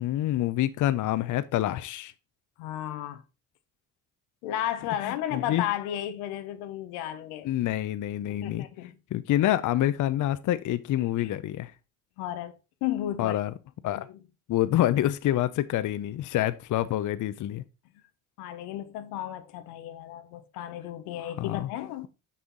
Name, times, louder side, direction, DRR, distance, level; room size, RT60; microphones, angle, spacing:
voice 1, 0.0-2.1 5.0-5.6 7.4-8.6 9.1-11.7 13.2-13.5 13.8-14.1 14.5-17.6 21.2-21.7, left 13 dB, 55° left, 0.6 m, -27 dB
voice 2, 2.6-3.2 4.4-7.5 8.3-8.9 11.2-11.3 12.2-13.4 14.0-14.1 18.4-22.1, left 12 dB, 90° left, 0.8 m, -33 dB
6.2 x 5.6 x 3.9 m
supercardioid pair, 75°, 37 cm